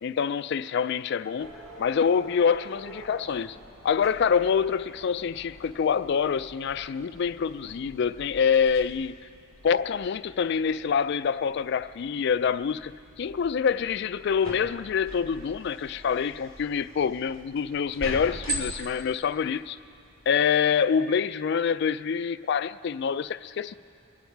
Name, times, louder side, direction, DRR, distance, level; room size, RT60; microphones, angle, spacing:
voice 1, 0.0-1.5 1.8-3.6 3.8-9.1 9.6-12.9 13.2-19.8 20.3-23.7, left 6 dB, 55° left, 0.3 m, -26 dB
sound 1, 1.4-20.3, right 1 dB, 90° right, 2.4 m, -43 dB
24.0 x 8.9 x 4.6 m
head